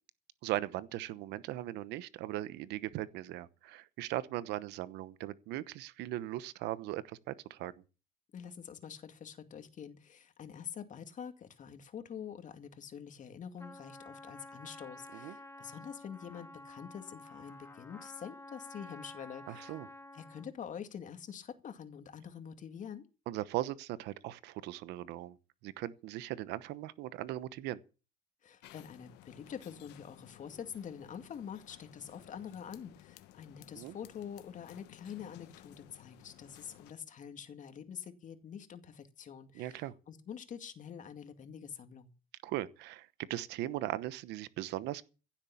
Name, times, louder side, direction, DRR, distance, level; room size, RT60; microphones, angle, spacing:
voice 1, 0.4-7.7 15.1-15.4 19.5-19.9 23.3-25.4 25.6-27.8 33.8-34.0 39.5-39.9 42.4-45.0, right 15 dB, 90° right, 1.0 m, -39 dB
voice 2, 8.3-19.8 20.1-23.0 28.4-42.1, left 8 dB, 50° left, 2.2 m, -46 dB
Trumpet, 13.6-20.5, left 2 dB, 15° left, 1.8 m, -51 dB
sound 1, 28.6-36.9, left 14 dB, 90° left, 1.3 m, -57 dB
16.0 x 7.4 x 8.6 m
cardioid pair, 110°, 17 cm